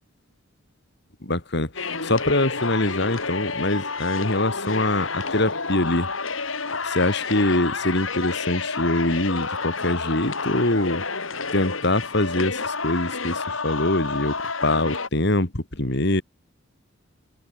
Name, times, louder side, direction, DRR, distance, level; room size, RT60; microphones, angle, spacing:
voice 1, 1.2-6.1 6.8-11.0 11.5-16.2, left 1 dB, 60° left, 2.9 m, -24 dB
sound 1, 1.8-15.1, left 4 dB, 80° left, 6.2 m, -29 dB
head